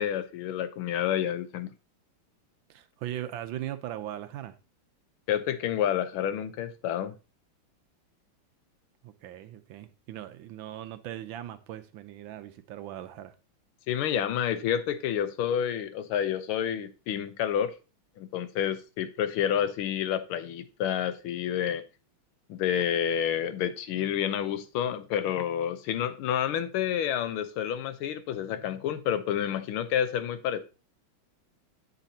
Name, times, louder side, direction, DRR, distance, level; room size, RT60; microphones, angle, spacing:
voice 1, 0.0-1.7 5.3-7.1 13.9-17.8 18.2-21.8 22.5-30.6, left 9 dB, 90° left, 1.6 m, -29 dB
voice 2, 2.7-4.5 9.0-13.3, right 12 dB, 75° right, 1.4 m, -39 dB
8.2 x 6.6 x 2.7 m
omnidirectional pair, 2.3 m